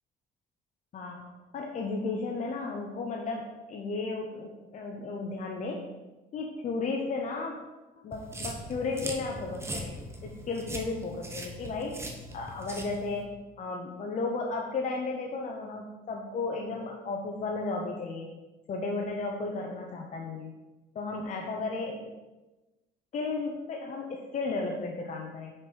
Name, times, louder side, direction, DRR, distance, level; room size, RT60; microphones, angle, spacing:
voice 1, 0.9-5.9 6.3-7.6 8.0-9.9 10.2-12.0 12.3-13.3 13.6-18.3 18.7-20.5 20.9-22.1 23.1-25.5, left 3 dB, 45° left, 1 dB, 0.8 m, -34 dB
sound 1, 8.1-13.2, right 1 dB, 15° right, 1.0 m, -40 dB
5.9 x 5.0 x 4.6 m, 1.1 s
cardioid pair, 110°, 17 cm